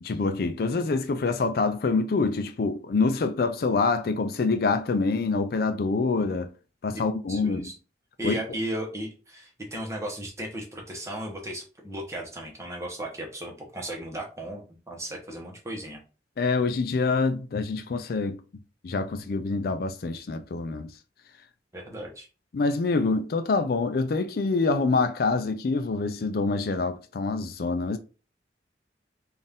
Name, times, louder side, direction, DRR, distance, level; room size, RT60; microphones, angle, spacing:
voice 1, 0.0-6.5 6.8-7.7 8.2-8.4 16.4-18.4 18.8-20.9 22.5-28.0, left 3 dB, 55° left, 0.4 m, -26 dB
voice 2, 7.3-7.7 8.2-16.0 21.7-22.3, right 1 dB, 15° right, 1.0 m, -35 dB
4.1 x 2.5 x 3.6 m
head